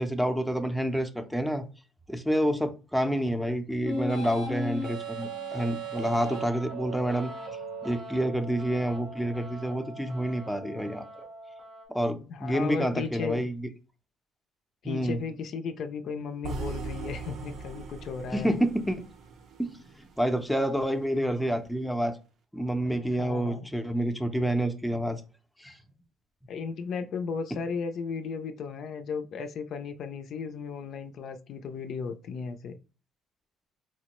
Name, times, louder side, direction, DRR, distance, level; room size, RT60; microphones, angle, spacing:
voice 1, 0.0-1.7 2.1-7.3 7.8-11.2 11.9-13.7 14.8-15.2 18.3-19.1 19.6-22.2 22.5-25.2 25.6-25.8, right 1 dB, ahead, 0.5 m, -28 dB
sound 1, 3.8-11.8, right 1 dB, 90° right, 1.3 m, -38 dB
voice 2, 12.3-13.4 14.8-18.5 23.2-23.7 26.5-32.8, left 5 dB, 60° left, 0.4 m, -35 dB
sound 2, 16.4-20.6, right 4 dB, 65° right, 0.6 m, -40 dB
4.3 x 2.1 x 2.9 m
supercardioid pair, 90°, 0 cm